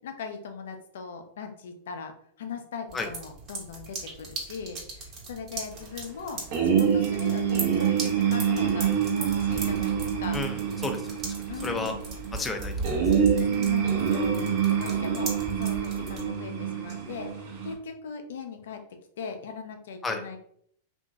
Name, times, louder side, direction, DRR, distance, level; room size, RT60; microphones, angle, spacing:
voice 1, 0.0-10.4 11.5-12.0 13.0-18.8 19.2-20.4, left 5 dB, 80° left, 6 dB, 0.5 m, -40 dB
sound 1, 2.9-16.3, right 3 dB, 40° right, 1.1 m, -38 dB
sound 2, 6.5-17.7, right 8 dB, 60° right, 0.8 m, -26 dB
voice 2, 10.3-11.3 11.6-11.9 12.3-12.9 20.0-20.2, left 3 dB, 15° left, 5 dB, 0.4 m, -32 dB
2.9 x 2.5 x 2.3 m, 0.64 s
hypercardioid pair, 130°, 0 cm